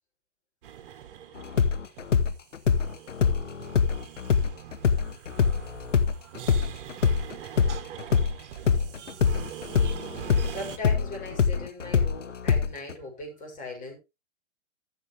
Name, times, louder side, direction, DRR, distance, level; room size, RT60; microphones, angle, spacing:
sound 1, 0.6-10.8, right 10 dB, 50° right, 1.8 m, -43 dB
sound 2, 1.4-8.3 8.7-12.9, left 6 dB, 90° left, 1.1 m, -24 dB
voice 1, 7.7-8.5 8.9-9.4 9.8-10.5, right 8 dB, 75° right, 1.1 m, -48 dB
voice 2, 10.5-14.0, left 2 dB, 20° left, 6.4 m, -39 dB
14.0 x 7.2 x 3.4 m
hypercardioid pair, 130°, 36 cm